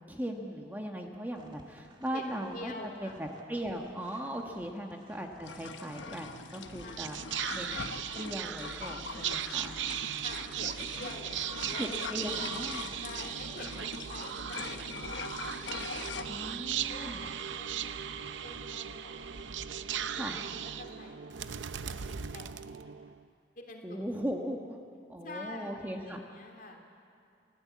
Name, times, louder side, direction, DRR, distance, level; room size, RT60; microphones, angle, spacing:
voice 1, 0.1-2.7 3.0-7.2 7.5-7.9 8.1-9.8 11.8-12.9 16.3-17.2 20.1-20.4 23.8-24.8 25.1-26.2, equal, 10° right, 1 dB, 1.4 m, -38 dB
sound 1, 1.3-10.9 11.2-18.6 19.0-21.3, right 1 dB, 25° right, 2.1 m, -57 dB
voice 2, 2.5-3.2 4.7-5.0 6.8-7.2 10.2-12.0 13.0-15.5 16.9-19.5 20.1-23.1 23.5-24.1 25.2-26.9, left 2 dB, 50° left, 1 dB, 3.3 m, -48 dB
sound 2, 5.4-16.2, left 4 dB, 85° left, 1.1 m, -42 dB
Whispering, 6.6-23.2, right 9 dB, 90° right, 0.7 m, -38 dB
28.0 x 16.0 x 8.5 m, 2.4 s
head